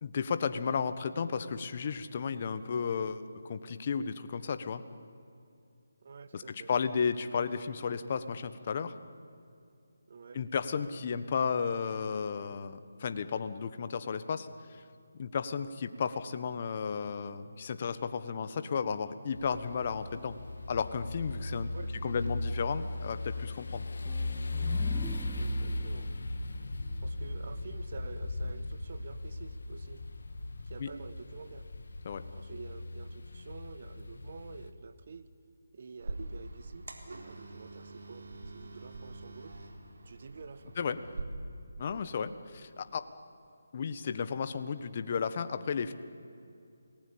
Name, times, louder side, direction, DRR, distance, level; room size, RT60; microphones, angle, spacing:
voice 1, 0.0-4.8 6.3-8.9 10.3-14.8 15.2-20.4 20.7-21.7 22.0-23.9 30.8-30.9 32.0-32.2 40.8-41.0 41.8-43.1 43.7-45.9, left 6 dB, 40° left, 11 dB, 1.4 m, -33 dB
voice 2, 6.0-6.7 10.1-10.4 21.7-22.3 25.3-26.1 27.0-30.0 30.6-31.7 32.3-35.3 35.7-36.9 37.2-38.2 38.5-39.5 40.0-40.7, right 5 dB, 50° right, 11 dB, 1.5 m, -48 dB
sound 1, 19.3-34.7, left 2 dB, 70° left, 2.0 m, -37 dB
sound 2, 24.0-27.7, right 3 dB, 5° right, 0.6 m, -50 dB
sound 3, 36.0-41.2, right 2 dB, 70° right, 3.7 m, -44 dB
28.5 x 19.5 x 8.8 m, 2.6 s
figure-of-eight pair, 160°, 0 cm